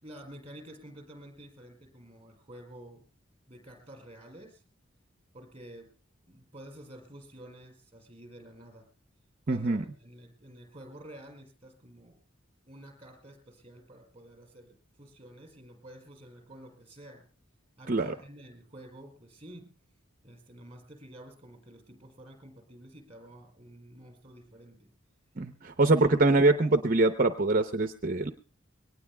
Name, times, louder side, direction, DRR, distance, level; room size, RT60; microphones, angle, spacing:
voice 1, 0.0-3.0 3.5-4.6 5.3-6.0 6.2-8.9 9.5-12.2 12.7-17.3 17.8-19.8 20.2-24.9 25.8-26.3, right 1 dB, 25° right, 5 dB, 4.9 m, -50 dB
voice 2, 9.5-9.8 17.9-18.1 25.4-28.3, right 2 dB, 45° right, 8 dB, 0.7 m, -24 dB
23.0 x 18.5 x 2.3 m, 0.37 s
head